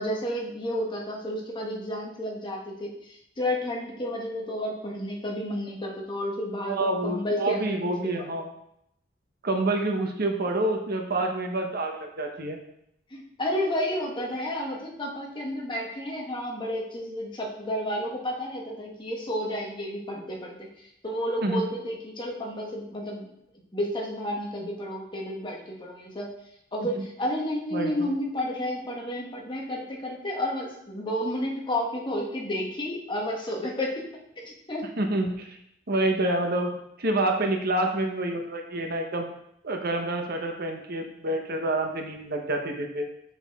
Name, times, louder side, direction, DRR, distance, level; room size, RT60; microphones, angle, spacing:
voice 1, 0.0-7.9 8.2-8.3 13.1-20.7 21.0-23.3 23.7-26.3 26.7-34.0 34.4-34.9, left 1 dB, 25° left, -1 dB, 1.3 m, -31 dB
voice 2, 6.7-8.5 9.4-12.6 21.4-21.6 26.8-27.0 27.7-28.1 35.0-35.6 35.9-36.7 37.0-39.3 39.6-43.0, right 2 dB, 55° right, 3 dB, 0.9 m, -27 dB
7.3 x 6.4 x 3.6 m, 0.77 s
head